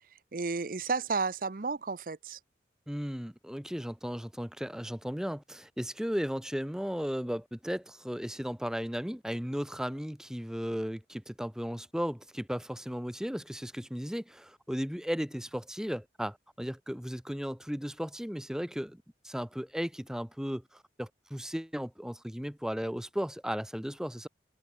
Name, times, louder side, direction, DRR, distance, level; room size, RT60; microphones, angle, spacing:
voice 1, 0.3-2.4, right 4 dB, 50° right, 0.7 m, -32 dB
voice 2, 2.9-24.3, equal, 5° right, 1.0 m, -35 dB
head